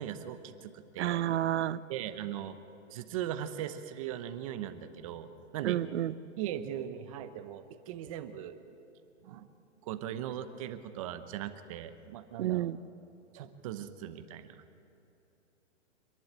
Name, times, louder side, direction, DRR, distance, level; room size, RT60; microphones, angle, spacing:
voice 1, 0.0-1.2 1.9-2.6 2.9-5.3 5.5-5.8 6.4-8.6 9.2-9.5 9.8-12.7 13.3-14.6, right 10 dB, 25° right, 9 dB, 0.8 m, -39 dB
voice 2, 1.0-1.8 5.6-6.1 12.4-12.8, right 12 dB, 60° right, 15 dB, 0.7 m, -30 dB
26.5 x 11.0 x 8.8 m, 2.8 s
hypercardioid pair, 155°, 38 cm